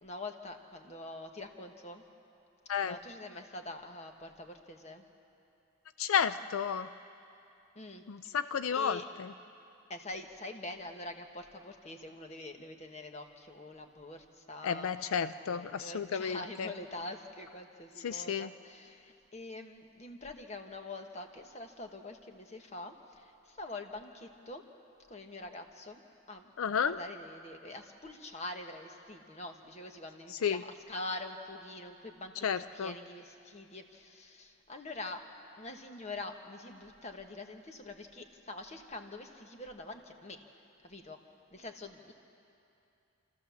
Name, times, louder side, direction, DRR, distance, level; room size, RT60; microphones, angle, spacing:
voice 1, 0.0-2.0 2.8-5.0 7.7-8.4 8.7-9.0 9.9-14.9 15.5-24.6 25.1-26.0 26.3-26.5 26.8-35.2 35.6-40.4 40.8-41.2 41.5-42.1, left 2 dB, 30° left, 5 dB, 1.3 m, -45 dB
voice 2, 6.0-6.9 8.1-9.3 14.6-16.7 18.0-18.5 26.6-27.0 30.4-30.6 32.4-32.9, left 7 dB, 85° left, 12 dB, 0.4 m, -32 dB
28.5 x 14.0 x 7.1 m, 2.7 s
head